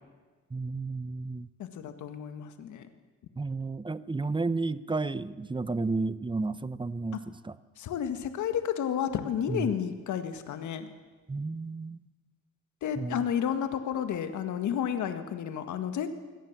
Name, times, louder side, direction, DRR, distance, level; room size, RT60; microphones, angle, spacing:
voice 1, 0.5-1.5 3.4-7.6 9.5-9.7 11.3-12.0 13.0-13.2, right 3 dB, 15° right, 16 dB, 0.8 m, -32 dB
voice 2, 1.6-2.9 7.1-7.2 7.8-10.9 12.8-16.1, left 9 dB, 75° left, 8 dB, 1.8 m, -31 dB
23.5 x 18.5 x 7.3 m, 1.4 s
cardioid pair, 90°, 30 cm